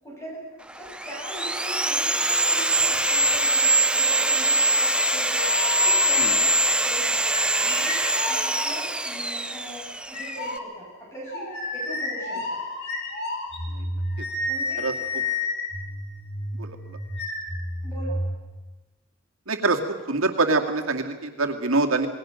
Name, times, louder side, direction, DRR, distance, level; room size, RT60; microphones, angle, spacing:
voice 1, 0.0-12.6 14.5-14.8 17.8-18.3, right 1 dB, 15° left, -4 dB, 7.6 m, -40 dB
Sawing, 0.7-10.6, right 1 dB, 5° right, 0.7 m, -23 dB
sound 1, 5.4-6.4 7.2-9.1 10.1-18.4, left 2 dB, 55° left, 5.1 m, -31 dB
voice 2, 16.6-17.0 19.5-19.8 20.1-22.1, right 3 dB, 90° right, 3 dB, 2.3 m, -25 dB
27.5 x 20.5 x 6.5 m, 1.1 s
head